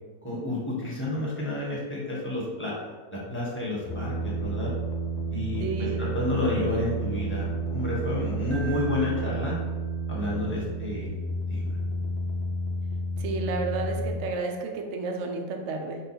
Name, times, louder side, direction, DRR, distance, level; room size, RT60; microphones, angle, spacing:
voice 1, 0.2-2.7 3.1-4.7 5.3-9.6 10.1-11.1 11.5-11.8, left 2 dB, 10° left, -7 dB, 0.9 m, -30 dB
sound 1, 3.9-14.2, right 2 dB, 65° left, 0.9 m, -31 dB
voice 2, 5.6-6.0 13.2-16.0, right 4 dB, 75° right, 2 dB, 0.6 m, -31 dB
Keyboard (musical), 8.5-10.3, right 4 dB, 50° right, 0.8 m, -46 dB
5.3 x 2.3 x 4.2 m, 1.4 s
omnidirectional pair, 1.9 m